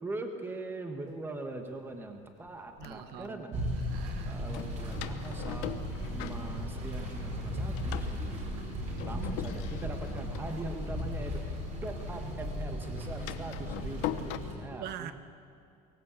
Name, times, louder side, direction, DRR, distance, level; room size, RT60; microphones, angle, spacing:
voice 1, 0.0-3.6 4.2-5.8 6.1-8.4 9.0-11.4 11.8-15.1, right 2 dB, 10° right, 5 dB, 1.5 m, -41 dB
Door, 1.3-1.4 2.2-3.3 4.5-7.1 7.4-11.9 12.1-14.4, left 13 dB, 80° left, 1.2 m, -42 dB
voice 2, 2.8-4.4 14.7-15.1, right 11 dB, 60° right, 11 dB, 1.3 m, -44 dB
sound 1, 3.5-14.5, equal, 40° right, 5.1 m, -36 dB
23.5 x 19.5 x 8.3 m, 2.4 s
cardioid pair, 165°, 18 cm